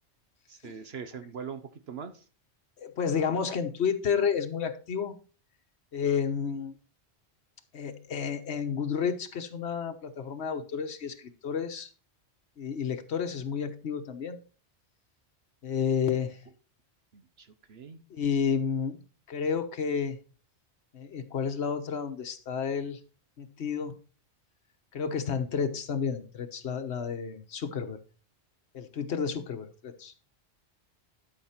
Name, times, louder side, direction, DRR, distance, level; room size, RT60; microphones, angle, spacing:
voice 1, 0.5-2.2 17.1-18.0, right 6 dB, 65° right, 10 dB, 1.1 m, -42 dB
voice 2, 2.8-5.1 5.9-6.7 7.7-11.9 12.6-14.4 15.6-16.4 18.1-19.0 19.3-20.2 20.9-23.0 23.4-24.0 24.9-28.0 28.7-30.1, left 6 dB, 75° left, 7 dB, 1.3 m, -31 dB
12.0 x 5.9 x 4.4 m, 0.36 s
omnidirectional pair, 1.1 m